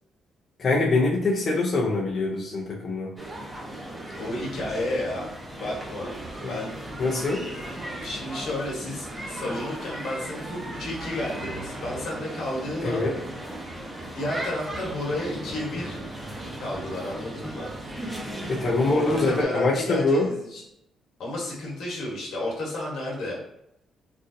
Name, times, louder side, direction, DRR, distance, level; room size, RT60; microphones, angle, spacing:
voice 1, 0.6-3.1 6.4-6.5 7.0-7.5 12.8-13.1 18.5-20.3, left 2 dB, 40° left, -4 dB, 0.6 m, -24 dB
sound 1, 3.2-19.4, right 1 dB, 15° right, 0.8 m, -37 dB
voice 2, 4.2-5.3 5.6-6.2 6.5-6.8 8.0-13.0 14.1-16.0 16.6-17.7 18.9-20.6 21.2-23.4, left 1 dB, 75° left, -4 dB, 1.2 m, -32 dB
3.3 x 2.5 x 2.6 m, 0.79 s
cardioid pair, 105°, 0 cm